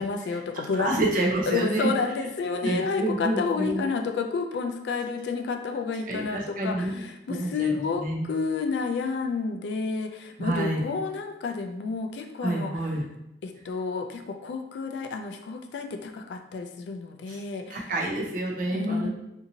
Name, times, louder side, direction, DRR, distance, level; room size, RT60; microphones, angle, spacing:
voice 1, 0.0-0.9 1.5-12.7 13.4-17.8 18.7-19.1, left 4 dB, 70° left, 5 dB, 0.3 m, -30 dB
voice 2, 0.8-1.9 2.6-3.8 6.1-8.3 10.4-10.9 12.4-13.0 17.3-17.4 17.7-19.1, right 1 dB, 45° right, -2 dB, 0.6 m, -28 dB
2.7 x 2.5 x 2.7 m, 0.84 s
head